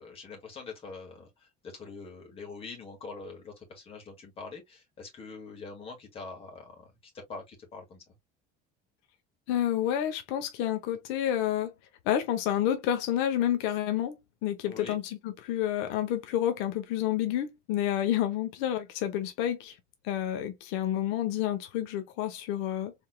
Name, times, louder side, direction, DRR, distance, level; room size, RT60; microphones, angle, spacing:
voice 1, 0.0-6.9 7.3-8.0 14.7-15.0, left 4 dB, 30° left, 1.9 m, -44 dB
voice 2, 9.5-11.7 12.0-19.8 20.0-22.9, left 11 dB, 85° left, 0.9 m, -29 dB
4.3 x 3.6 x 2.2 m
cardioid pair, 165°, 20 cm